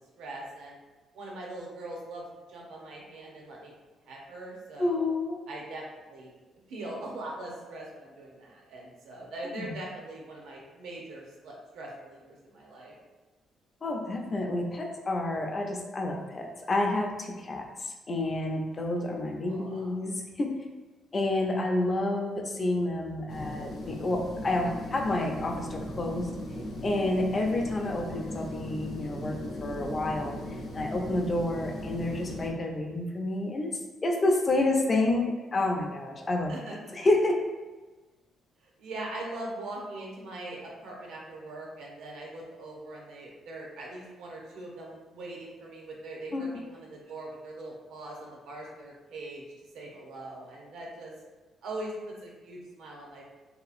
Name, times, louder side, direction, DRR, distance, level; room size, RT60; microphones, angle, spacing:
voice 1, 0.2-0.8 1.1-2.2 2.5-3.7 4.0-5.1 5.5-5.8 6.1-6.3 6.7-12.9 19.4-19.9 36.5-36.7 38.6-49.4 49.7-51.1 51.6-53.2, right 2 dB, 80° right, -2 dB, 0.6 m, -41 dB
voice 2, 4.8-5.4 9.5-9.7 13.8-20.5 21.1-26.3 26.8-29.3 29.6-30.4 30.7-33.7 34.0-36.5 36.9-37.3 46.3-46.4, left 2 dB, 35° left, 1 dB, 0.4 m, -29 dB
sound 1, 23.3-32.5, left 1 dB, 70° left, 0.7 m, -38 dB
2.8 x 2.4 x 2.4 m, 1.2 s
cardioid pair, 90°, 0 cm